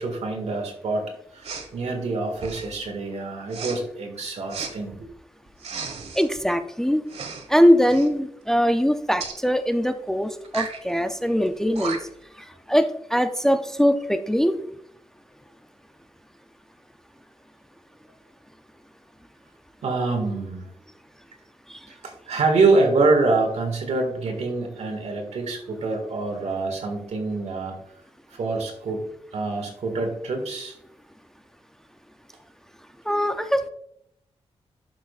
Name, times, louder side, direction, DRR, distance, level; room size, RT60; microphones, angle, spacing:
voice 1, 0.0-5.1 19.8-20.7 22.0-27.9 28.3-29.0 29.3-30.8, right 3 dB, 85° right, 4 dB, 1.8 m, -25 dB
Respiratory sounds, 1.4-1.7 2.3-2.8 3.5-3.8 4.5-4.7 5.6-6.3 7.1-7.5 7.8-8.1 9.2-9.4 10.4-10.8 11.5-11.6 11.7-12.2, right 5 dB, 70° right, 1.4 m, -34 dB
voice 2, 6.1-7.0 7.5-12.0 12.7-14.6 21.7-21.8 33.1-33.7, equal, 5° left, 8 dB, 0.4 m, -21 dB
11.5 x 6.2 x 2.4 m, 0.74 s
wide cardioid pair, 170°, 11 cm